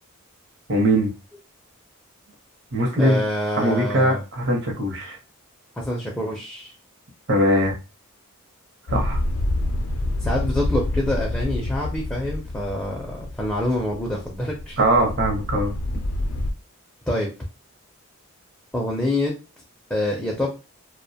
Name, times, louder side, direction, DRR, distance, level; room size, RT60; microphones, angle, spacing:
voice 1, 0.7-1.1 2.7-3.2 3.6-5.2 7.3-7.7 8.9-9.2 14.8-15.7, right 1 dB, 55° right, 1 dB, 0.7 m, -21 dB
voice 2, 2.9-4.2 5.8-6.7 10.2-14.8 17.1-17.3 18.7-19.3 19.9-20.6, left 1 dB, 5° left, -2 dB, 0.4 m, -26 dB
sound 1, 8.9-16.5, left 1 dB, 75° left, 0.4 m, -27 dB
2.4 x 2.1 x 2.7 m, 0.30 s
head